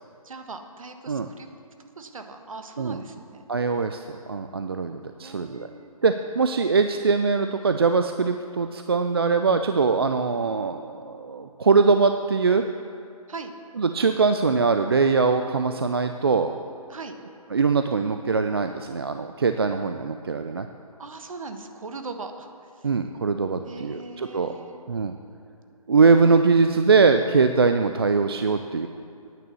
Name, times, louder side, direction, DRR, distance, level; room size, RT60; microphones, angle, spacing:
voice 1, 0.2-1.5 2.0-3.4 5.2-5.9 13.3-13.5 16.9-17.1 21.0-22.9 23.6-24.8, right 3 dB, 60° right, 6 dB, 1.3 m, -40 dB
voice 2, 3.5-4.0 4.3-5.6 6.0-12.6 13.8-16.5 17.5-20.7 22.8-24.5 24.9-25.1 25.9-28.9, right 4 dB, 40° right, 7 dB, 0.4 m, -22 dB
9.7 x 9.1 x 6.8 m, 2.5 s
hypercardioid pair, 170°, 19 cm